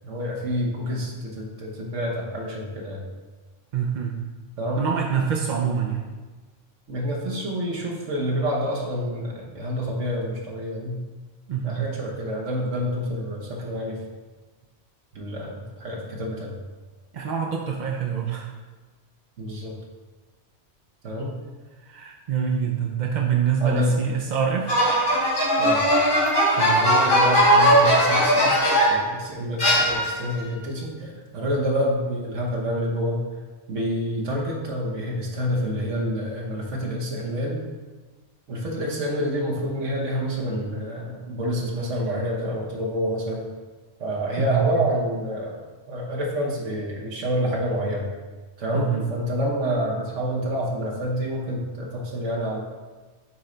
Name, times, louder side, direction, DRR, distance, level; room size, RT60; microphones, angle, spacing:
voice 1, 0.0-3.0 4.6-4.9 6.9-11.0 11.6-14.0 15.1-16.5 19.4-19.7 21.0-21.3 23.6-23.9 25.6-25.9 26.8-28.6 28.9-33.2 33.7-37.6 38.5-43.5 44.0-48.1 48.6-52.6, equal, 75° right, -3 dB, 1.5 m, -28 dB
voice 2, 3.7-4.1 4.8-6.1 11.5-11.8 17.1-18.5 21.8-24.7 26.6-26.9 44.4-44.7 48.7-49.0, right 7 dB, 55° right, 0 dB, 0.5 m, -25 dB
sound 1, 24.7-29.1 29.6-30.3, equal, 80° left, 2.4 m, -19 dB
8.9 x 3.2 x 3.9 m, 1.3 s
omnidirectional pair, 1.3 m